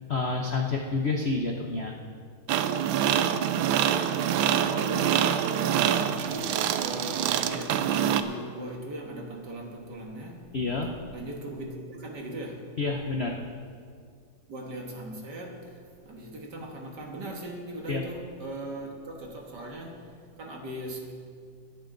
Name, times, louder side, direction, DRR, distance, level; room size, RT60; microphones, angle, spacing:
voice 1, 0.0-1.9 10.5-11.0 12.8-13.4 17.9-18.0, left 3 dB, 65° left, 2 dB, 0.6 m, -29 dB
sound 1, 2.5-8.2, right 9 dB, 80° right, 1.3 m, -25 dB
voice 2, 4.6-10.4 11.1-12.7 14.5-20.0 20.4-21.1, right 1 dB, 55° right, 0 dB, 2.2 m, -39 dB
20.0 x 9.0 x 3.9 m, 2.1 s
omnidirectional pair, 2.2 m